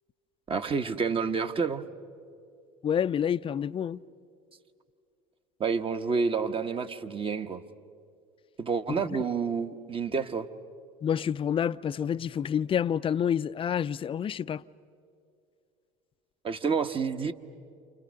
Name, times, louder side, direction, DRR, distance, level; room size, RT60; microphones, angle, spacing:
voice 1, 0.5-1.8 5.6-7.6 8.6-10.5 16.4-17.3, right 5 dB, 30° right, 1.4 m, -29 dB
voice 2, 2.8-4.0 11.0-14.6, left 8 dB, 30° left, 0.6 m, -28 dB
29.0 x 29.0 x 6.5 m
hypercardioid pair, 75°, 17 cm